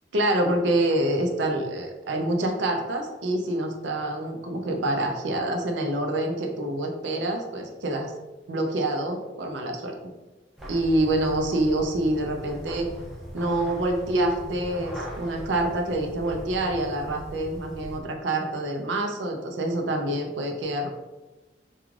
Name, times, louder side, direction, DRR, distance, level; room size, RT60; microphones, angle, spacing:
voice 1, 0.1-8.1 8.5-10.1 10.7-12.9 13.3-20.9, right 1 dB, 85° right, 3 dB, 0.5 m, -26 dB
sound 1, 10.6-18.0, equal, ahead, 0.5 m, -40 dB
2.4 x 2.3 x 3.1 m, 1.1 s
head